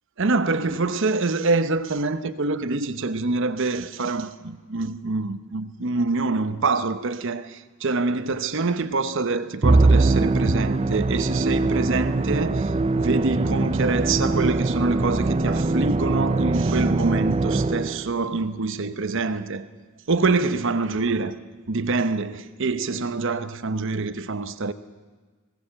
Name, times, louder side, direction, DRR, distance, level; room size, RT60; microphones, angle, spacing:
voice 1, 0.2-19.7 20.1-21.3 21.7-24.7, right 3 dB, 65° right, 0.9 m, -25 dB
Musical instrument, 9.6-18.1, right 2 dB, 30° right, 0.5 m, -22 dB
19.0 x 18.0 x 7.6 m
head